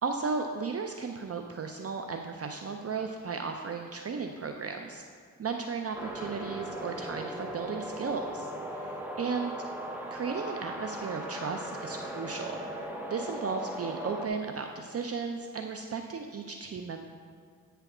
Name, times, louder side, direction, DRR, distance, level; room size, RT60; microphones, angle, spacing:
voice 1, 0.0-5.0 5.4-9.5 10.1-12.6 13.1-17.1, right 5 dB, 45° right, 4 dB, 0.5 m, -35 dB
sound 1, 5.9-14.3, equal, 5° right, 1.0 m, -38 dB
8.9 x 3.4 x 6.0 m, 2.1 s
cardioid pair, 55°, 34 cm